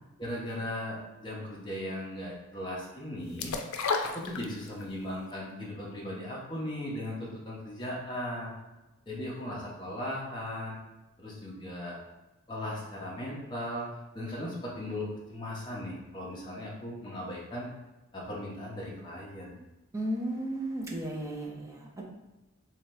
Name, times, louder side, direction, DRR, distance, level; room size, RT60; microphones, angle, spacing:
voice 1, 0.2-3.6 4.0-8.5 9.1-10.8 11.2-12.0 12.5-13.9 14.1-17.7 18.1-19.7, left 1 dB, 20° left, -4 dB, 0.9 m, -37 dB
sound 1, 3.4-4.9 5.3-5.4, left 4 dB, 90° left, 0.4 m, -31 dB
voice 2, 19.9-22.0, right 1 dB, 15° right, -2 dB, 0.6 m, -34 dB
3.9 x 2.8 x 3.2 m, 1.0 s
head